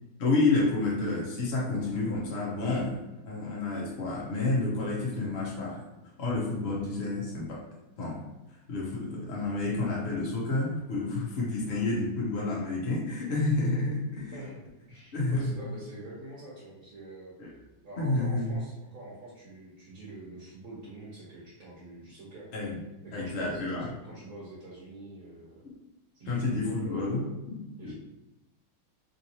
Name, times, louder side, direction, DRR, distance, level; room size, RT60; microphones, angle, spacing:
voice 1, 0.2-3.0 3.3-5.8 6.2-7.6 8.0-8.2 8.7-14.4 15.1-15.5 17.4-17.5 18.0-18.5 22.5-22.8 23.1-23.9 25.6-25.7 26.3-27.9, left 3 dB, 65° left, -4 dB, 0.6 m, -29 dB
voice 2, 14.3-17.3 17.8-22.5 23.0-25.6 26.1-27.3 27.8-27.9, right 2 dB, 50° right, -7 dB, 1.3 m, -45 dB
3.7 x 3.0 x 2.7 m, 0.98 s
omnidirectional pair, 2.3 m